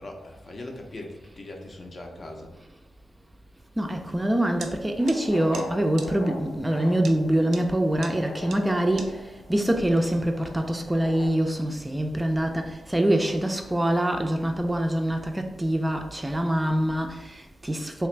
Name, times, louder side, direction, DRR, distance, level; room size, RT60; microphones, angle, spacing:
voice 1, 0.0-2.5, left 1 dB, 45° left, 0.6 m, -40 dB
voice 2, 3.8-18.1, right 1 dB, 15° right, 0.4 m, -25 dB
sound 1, 4.6-11.3, left 3 dB, 90° left, 0.4 m, -42 dB
sound 2, 4.6-4.7 5.1-5.2 5.5-5.6 6.0-6.1 7.0-7.1 7.5-7.6 8.0-8.1 8.5-8.6 9.0-9.1, right 5 dB, 85° right, 0.4 m, -38 dB
2.9 x 2.4 x 3.2 m
cardioid pair, 60°, 0 cm